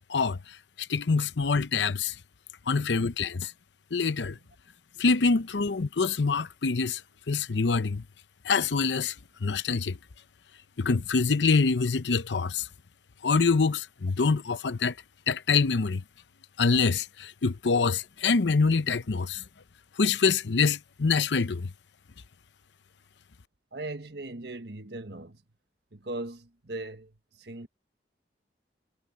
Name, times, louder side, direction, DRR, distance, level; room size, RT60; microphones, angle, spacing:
voice 1, 0.1-2.2 2.7-3.5 3.9-4.4 5.0-7.0 7.3-8.0 8.4-9.1 9.4-10.0 10.8-12.7 13.2-14.9 15.3-16.0 16.6-19.4 20.0-21.7, left 4 dB, 85° left, 0.7 m, -25 dB
voice 2, 23.7-25.4 25.9-27.7, right 2 dB, 65° right, 1.5 m, -39 dB
head